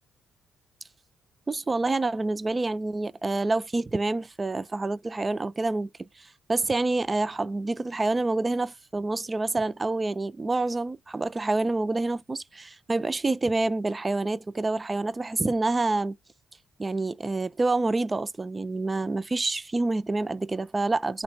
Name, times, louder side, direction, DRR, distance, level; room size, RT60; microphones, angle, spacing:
voice 1, 1.5-16.1 16.8-21.2, right 2 dB, 25° right, 0.3 m, -27 dB
3.1 x 2.1 x 2.7 m
cardioid pair, 90°, 0 cm